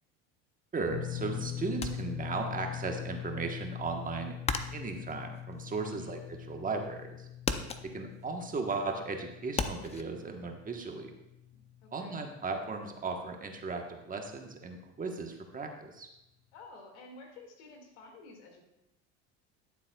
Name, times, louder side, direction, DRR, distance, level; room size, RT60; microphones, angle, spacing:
voice 1, 0.7-4.4 4.7-6.2 6.5-7.3 7.8-11.1 11.9-16.1, right 4 dB, 25° right, 3 dB, 1.2 m, -36 dB
sound 1, 0.9-13.1 13.4-13.6 15.3-15.4, left 11 dB, 55° left, 3.0 m, -43 dB
sound 2, 1.8-2.9 3.2-6.4 6.7-7.1 7.4-10.0, left 5 dB, 20° left, 0.5 m, -36 dB
voice 2, 11.8-12.2 16.5-18.6, left 3 dB, 85° left, 3 dB, 2.1 m, -51 dB
13.0 x 7.3 x 2.3 m, 0.90 s
supercardioid pair, 100°, 35 cm